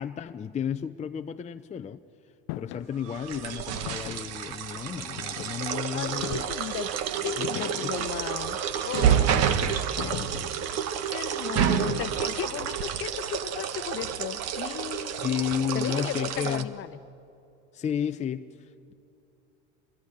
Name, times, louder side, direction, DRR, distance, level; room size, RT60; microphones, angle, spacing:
voice 1, 0.0-2.0 2.6-6.5 7.4-7.5 7.8-8.0 9.3-10.5 15.2-16.7 17.7-18.9, left 8 dB, 20° left, 7 dB, 0.7 m, -33 dB
sound 1, 2.5-2.9 3.9-4.4 5.2-5.7 6.2-6.7 7.4-8.0 8.9-9.5 10.0-10.6 11.7-12.3, left 19 dB, 65° left, 0.6 m, -39 dB
sound 2, 3.1-16.6, right 9 dB, 55° right, 1.5 m, -29 dB
Wind instrument woodwind instrument, 4.5-7.3 7.7-12.1, left 1 dB, ahead, 7.7 m, -54 dB
voice 2, 5.9-6.9 7.2-8.6 8.8-9.5 10.0-10.2 11.1-15.4 15.7-17.0, left 12 dB, 45° left, 12 dB, 1.0 m, -36 dB
27.0 x 21.5 x 9.9 m, 2.7 s
supercardioid pair, 105°, 30 cm